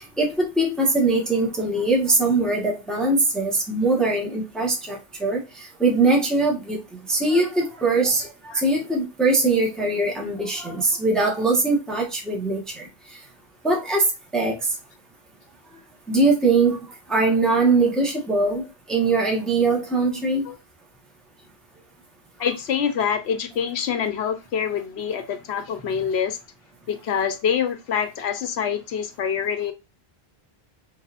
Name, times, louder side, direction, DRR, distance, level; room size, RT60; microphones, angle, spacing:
voice 1, 0.0-12.9 13.6-14.0 14.3-14.6 16.1-16.8 17.1-18.6 18.9-20.4, right 3 dB, ahead, 1.1 m, -21 dB
voice 2, 22.4-26.4 26.9-29.7, left 7 dB, 85° left, 1.0 m, -25 dB
5.4 x 2.9 x 2.5 m
omnidirectional pair, 1.1 m